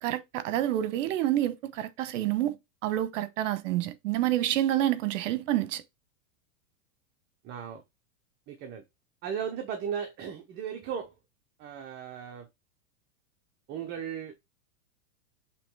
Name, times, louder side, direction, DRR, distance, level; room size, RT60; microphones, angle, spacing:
voice 1, 0.0-2.6 2.8-5.8, right 13 dB, 55° right, 1.0 m, -28 dB
voice 2, 7.4-7.8 8.5-8.8 9.2-11.1 11.6-12.5 13.7-14.3, right 8 dB, 25° right, 0.7 m, -36 dB
6.8 x 3.1 x 4.6 m
supercardioid pair, 145°, 45 cm